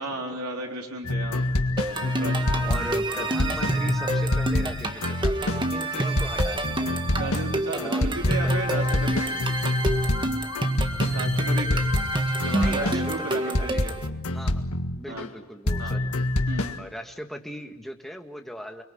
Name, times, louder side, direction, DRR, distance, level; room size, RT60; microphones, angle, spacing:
voice 1, 0.0-1.4 2.0-2.6 7.2-9.4 11.1-11.8 12.4-13.9 15.1-15.2 15.8-16.0 16.5-16.8, right 2 dB, 85° right, 0 dB, 4.1 m, -34 dB
sound 1, 1.0-15.3 15.7-16.8, left 1 dB, 75° left, 1.8 m, -27 dB
sound 2, 1.8-14.1, right 2 dB, 20° right, 1.7 m, -28 dB
voice 2, 2.6-6.9 7.7-8.5 12.5-13.9 14.3-14.6 14.9-16.1 16.8-18.8, equal, ahead, 3 dB, 2.0 m, -39 dB
30.0 x 22.5 x 8.7 m, 0.96 s
head